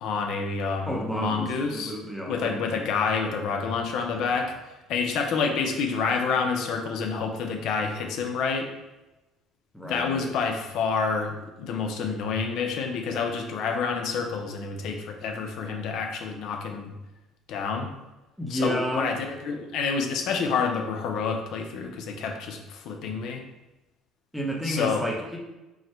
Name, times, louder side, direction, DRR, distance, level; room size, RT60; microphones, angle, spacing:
voice 1, 0.0-1.9 2.3-4.5 4.9-8.7 9.8-16.9 17.5-17.9 18.5-23.4 24.6-25.0, left 5 dB, 65° left, 3 dB, 0.6 m, -28 dB
voice 2, 0.9-2.6 9.7-10.3 18.4-19.2 24.3-25.4, equal, ahead, -2 dB, 0.8 m, -31 dB
4.6 x 2.2 x 4.4 m, 1.0 s
cardioid pair, 125°, 0 cm